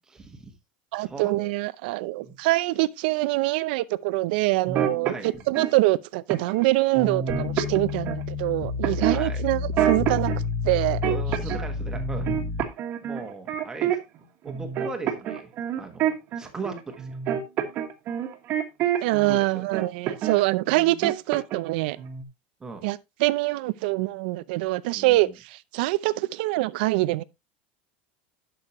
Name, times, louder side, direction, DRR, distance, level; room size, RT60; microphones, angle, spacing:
voice 1, 0.1-0.5 0.9-1.5 2.2-2.4 5.0-5.3 9.0-9.4 11.0-12.3 13.0-14.0 14.4-15.5 15.8-17.2 19.3-19.7 22.6-22.9 24.9-25.3, right 4 dB, 10° right, 1.3 m, -38 dB
voice 2, 0.9-10.3 10.6-11.0 19.0-22.0 22.8-27.2, right 19 dB, 70° right, 0.6 m, -24 dB
sound 1, 4.7-5.7 6.3-6.6 6.9-8.2 8.8-10.4 10.7-11.7 11.9-14.2 14.5-19.3 19.7-20.4 20.7-21.7 22.0-22.2, right 9 dB, 40° right, 1.4 m, -28 dB
sound 2, 7.3-12.6, left 5 dB, 35° left, 1.6 m, -30 dB
11.0 x 6.3 x 3.0 m
supercardioid pair, 160°, 5 cm